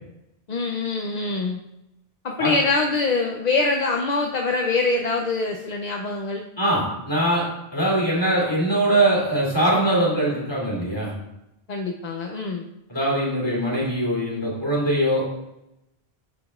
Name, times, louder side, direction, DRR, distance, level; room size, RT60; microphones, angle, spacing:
voice 1, 0.5-1.6 2.2-6.4 11.7-12.7, left 3 dB, 50° left, 1 dB, 0.6 m, -24 dB
voice 2, 6.6-7.4 7.7-11.1 12.9-15.2, right 1 dB, 25° left, -5 dB, 3.0 m, -22 dB
13.0 x 5.1 x 2.4 m, 0.88 s
omnidirectional pair, 1.1 m